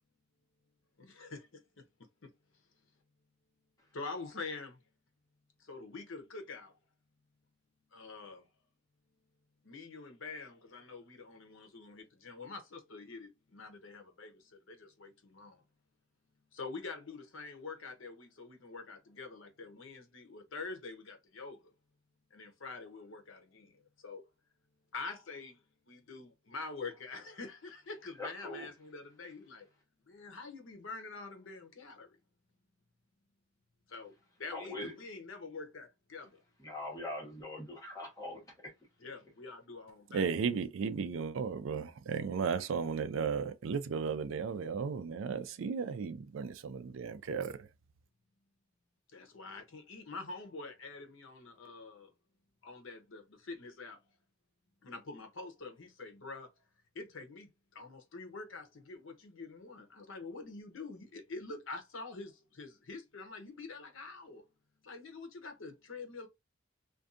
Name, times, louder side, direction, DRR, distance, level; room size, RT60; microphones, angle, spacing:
voice 1, 1.0-1.9 2.2-2.3 3.9-4.8 5.6-6.7 7.9-8.5 9.6-15.6 16.5-21.6 22.3-23.8 24.0-24.2 24.9-29.7 30.1-32.2 33.9-36.4 39.0-40.3 49.1-52.1 52.6-54.0 54.8-56.5 56.9-64.4 64.8-66.3, left 3 dB, 80° left, 0.7 m, -46 dB
voice 2, 28.2-28.7 34.5-34.9 36.6-38.7, left 1 dB, 15° left, 1.1 m, -42 dB
voice 3, 40.1-47.7, right 5 dB, 85° right, 0.4 m, -35 dB
2.6 x 2.3 x 2.5 m
head